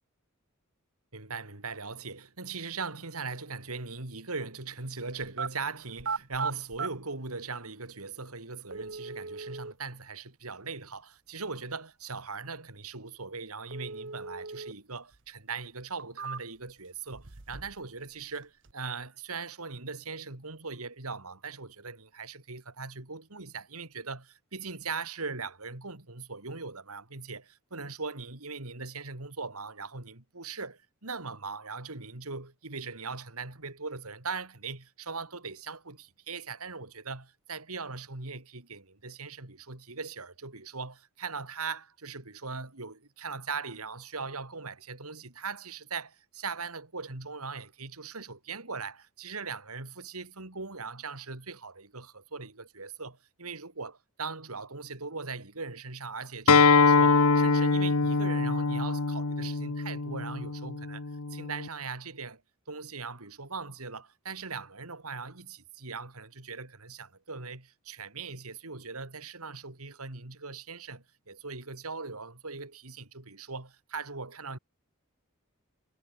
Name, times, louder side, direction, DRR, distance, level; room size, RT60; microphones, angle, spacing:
voice 1, 1.1-61.0 61.3-62.4 62.7-74.6, right 4 dB, 90° right, 3.1 m, -40 dB
sound 1, 5.2-5.5 6.0-6.9 7.9-8.0 8.7-9.7 13.7-14.7 15.1-15.2 15.8-16.7 17.1-17.8 18.1-18.7, right 5 dB, 55° right, 1.3 m, -37 dB
Acoustic guitar, 56.5-61.7, left 4 dB, 90° left, 1.3 m, -24 dB
head